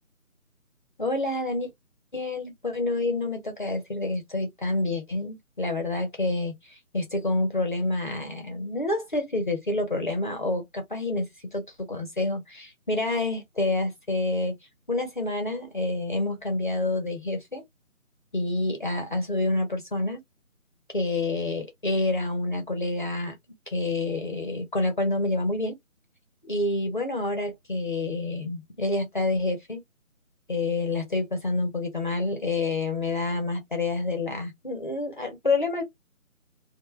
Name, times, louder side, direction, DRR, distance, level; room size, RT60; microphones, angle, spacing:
voice 1, 1.0-1.7 2.1-11.6 11.9-14.5 14.9-17.6 18.3-20.2 20.9-23.4 23.7-25.8 26.4-29.8 30.5-35.8, left 2 dB, 35° left, 0.7 m, -28 dB
2.8 x 2.1 x 3.2 m
figure-of-eight pair, 160°, 42 cm